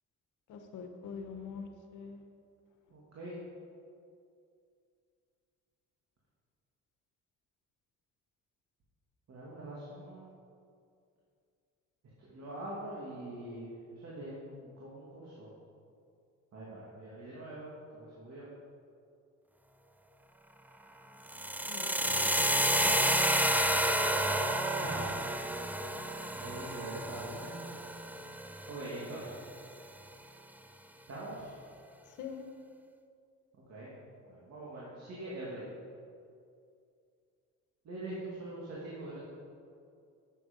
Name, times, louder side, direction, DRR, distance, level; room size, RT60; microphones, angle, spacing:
voice 1, 0.5-2.2 21.7-22.5 22.8-23.0 32.2-32.4, left 6 dB, 85° left, 5 dB, 1.3 m, -44 dB
voice 2, 2.9-3.3 9.3-10.3 12.2-15.5 16.5-18.4 24.8-25.2 26.4-27.6 28.7-29.3 31.1-31.5 33.7-33.9 34.2-35.6 37.8-39.2, right 1 dB, 60° right, -6 dB, 2.7 m, -43 dB
sound 1, 21.3-29.3, right 1 dB, 5° right, 0.6 m, -30 dB
10.5 x 8.4 x 5.4 m, 2.4 s
cardioid pair, 90°, 30 cm